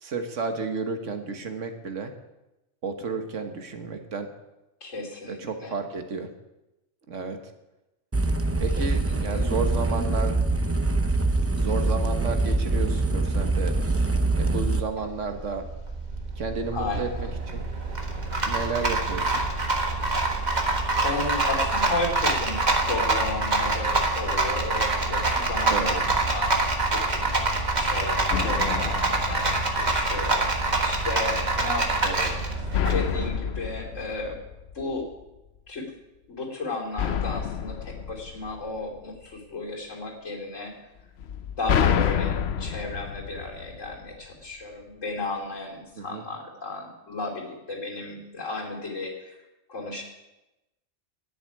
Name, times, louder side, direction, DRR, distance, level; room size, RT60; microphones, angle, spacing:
voice 1, 0.0-2.1 2.8-4.3 5.3-6.3 7.1-7.5 8.6-10.3 11.6-13.7 14.3-15.6 16.4-17.6 18.5-19.4 25.7-26.0 32.0-32.3 41.7-41.9 46.0-46.2, right 4 dB, 75° right, 6 dB, 1.7 m, -32 dB
voice 2, 4.8-5.8 8.8-9.5 15.0-15.1 16.7-17.4 20.9-26.6 26.9-32.5 32.9-34.4 34.7-35.1 35.7-35.9 36.3-40.8 41.6-49.4 49.7-50.0, left 3 dB, 80° left, -1 dB, 3.5 m, -34 dB
sound 1, 8.1-14.8, right 2 dB, 15° right, 0.5 m, -24 dB
Rattle, 14.7-33.3, right 2 dB, 35° right, 1.6 m, -26 dB
sound 2, 28.3-30.2 32.7-35.1 37.0-39.2 41.2-44.3, left 8 dB, 60° left, 0.9 m, -29 dB
10.5 x 8.4 x 9.7 m, 0.98 s
omnidirectional pair, 1.3 m